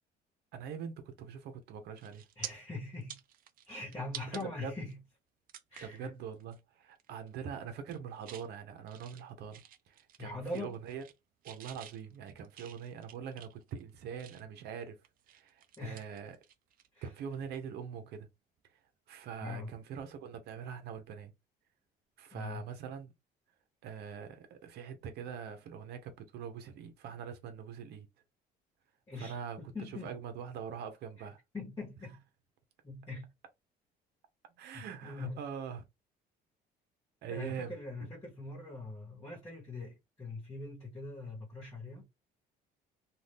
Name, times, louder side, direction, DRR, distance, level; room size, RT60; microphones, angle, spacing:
voice 1, 0.5-2.2 4.3-4.7 5.8-11.0 11.4-15.0 15.3-16.4 17.0-18.3 19.1-21.3 22.2-23.1 23.8-28.1 29.2-31.4 34.6-35.8 37.2-37.8, right 7 dB, 75° right, 0.8 m, -43 dB
sound 1, 1.4-1.6 2.0-2.5 2.9-4.4 4.9-5.0 5.5-6.0 6.4-6.6 6.9-7.3 7.7-8.5 8.9-10.2 10.5-11.2 11.4-14.6 15.0-16.9 17.1-17.3 19.2-19.4, right 11 dB, 55° right, 0.5 m, -49 dB
voice 2, 2.4-3.2 3.7-5.0 5.7-6.1 10.2-10.8 15.8-16.1 16.9-17.1 19.4-19.7 22.3-22.6 29.1-30.2 31.5-32.2 32.8-33.3 34.7-35.4 37.3-42.0, left 2 dB, 20° left, 1.3 m, -42 dB
2.6 x 2.4 x 3.4 m
cardioid pair, 110°, 17 cm